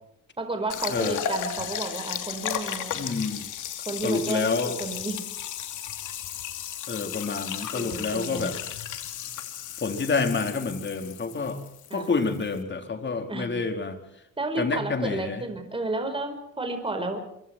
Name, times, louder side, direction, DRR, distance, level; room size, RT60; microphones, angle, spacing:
voice 1, 0.4-3.0 3.8-5.2 7.7-8.5 11.9-12.1 13.3-13.5 14.4-17.2, right 2 dB, 20° right, 5 dB, 4.9 m, -32 dB
sound 1, 0.7-12.6, left 9 dB, 80° left, 2.8 m, -35 dB
voice 2, 0.9-1.2 2.9-3.5 4.0-4.8 6.9-8.6 9.8-11.6 11.9-14.0 14.6-15.4, left 4 dB, 35° left, 5 dB, 4.1 m, -28 dB
25.5 x 23.5 x 4.6 m, 0.77 s
cardioid pair, 90°, 30 cm